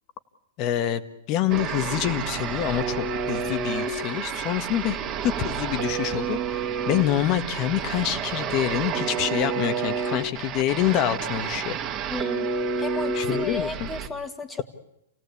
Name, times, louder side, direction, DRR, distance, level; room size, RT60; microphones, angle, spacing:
voice 1, 0.6-1.0 1.3-11.8 13.1-13.9, left 12 dB, 30° left, 11 dB, 1.6 m, -26 dB
sound 1, 1.5-14.1, right 5 dB, 25° right, 2.6 m, -29 dB
voice 2, 12.1-12.5 12.8-14.6, left 3 dB, 10° left, 8 dB, 2.1 m, -33 dB
29.0 x 17.5 x 8.5 m, 0.82 s
hypercardioid pair, 155°, 0 cm